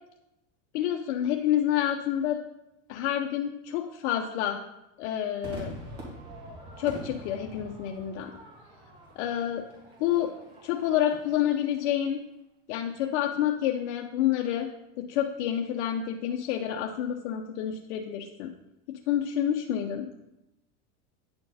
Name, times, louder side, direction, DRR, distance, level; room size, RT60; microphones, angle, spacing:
voice 1, 0.7-2.4 2.9-4.6 5.0-5.7 6.8-8.3 9.2-9.7 10.0-10.3 10.6-12.2 12.7-14.7 15.0-18.5 18.9-20.1, left 11 dB, 65° left, 2 dB, 0.7 m, -28 dB
Crowd / Fireworks, 5.4-12.0, right 1 dB, 50° right, 2.4 m, -45 dB
9.5 x 4.4 x 4.1 m, 0.91 s
supercardioid pair, 140°, 36 cm